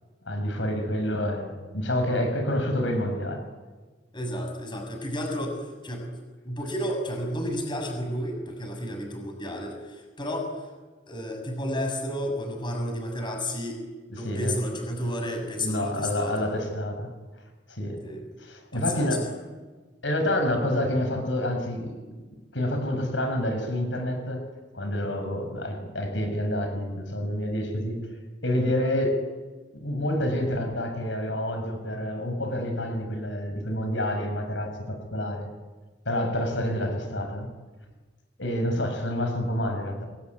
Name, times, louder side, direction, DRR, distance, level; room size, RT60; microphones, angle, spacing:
voice 1, 0.2-3.4 14.1-14.6 15.6-17.1 17.7-18.0 18.4-19.3 20.0-22.0 22.5-24.5 24.7-28.1 28.4-29.2 29.8-35.5 36.0-37.5 38.4-40.1, left 1 dB, 90° left, 5 dB, 6.6 m, -28 dB
voice 2, 4.1-6.1 6.4-10.5 11.1-13.8 14.1-16.5 18.0-18.2 18.7-19.1, equal, 25° left, 3 dB, 6.5 m, -32 dB
28.5 x 20.0 x 9.8 m, 1.3 s
head